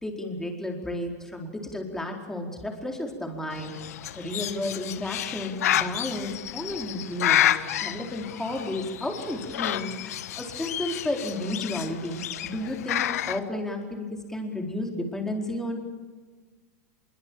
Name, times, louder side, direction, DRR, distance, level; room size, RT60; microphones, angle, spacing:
voice 1, 0.0-3.8 4.1-16.0, left 1 dB, 5° left, 2 dB, 4.5 m, -32 dB
Bird, 3.5-13.4, left 12 dB, 80° left, 1.4 m, -30 dB
24.5 x 23.0 x 8.9 m, 1.4 s
supercardioid pair, 140°, 8 cm